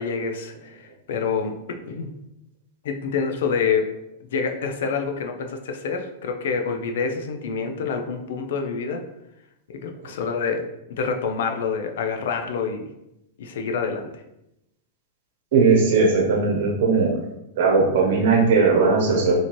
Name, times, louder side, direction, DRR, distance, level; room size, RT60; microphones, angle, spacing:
voice 1, 0.0-1.5 1.9-2.1 2.8-3.9 4.3-9.0 9.7-12.9 13.4-14.1, left 5 dB, 75° left, 5 dB, 0.4 m, -27 dB
voice 2, 15.5-17.1 17.6-19.3, right 4 dB, 65° right, 0 dB, 0.8 m, -18 dB
2.7 x 2.5 x 2.9 m, 0.86 s
supercardioid pair, 140°, 0 cm